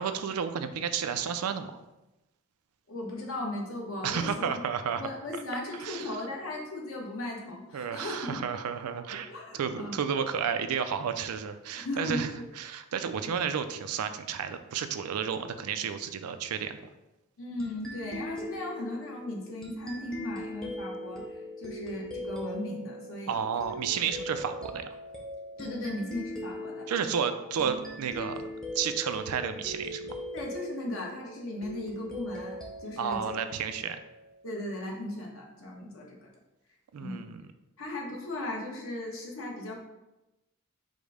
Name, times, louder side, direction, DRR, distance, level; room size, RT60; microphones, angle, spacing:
voice 1, 0.0-1.8 4.0-5.1 5.8-6.2 7.7-12.3 12.6-16.8 23.3-24.9 26.9-28.4 28.7-30.2 33.0-34.0 36.9-37.4, right 7 dB, 85° right, 9 dB, 0.4 m, -32 dB
voice 2, 2.9-4.5 5.0-8.5 9.1-9.9 11.7-12.5 17.4-23.4 25.6-26.9 30.3-33.4 34.4-36.3 37.0-37.2 37.8-39.8, left 1 dB, 65° left, -1 dB, 1.0 m, -37 dB
sound 1, 17.6-34.8, equal, ahead, 0.6 m, -40 dB
5.1 x 2.1 x 4.8 m, 0.97 s
head